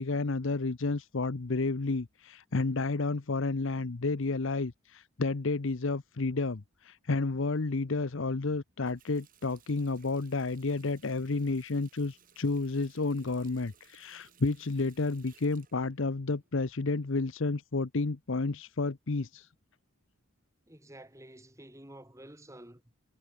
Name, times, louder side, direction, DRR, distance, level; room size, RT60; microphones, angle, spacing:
voice 1, 0.0-19.5, left 3 dB, 60° left, 0.8 m, -31 dB
Water tap faucet, 8.7-17.1, right 9 dB, 40° right, 7.6 m, -63 dB
voice 2, 20.7-22.8, right 1 dB, 15° right, 2.6 m, -50 dB
head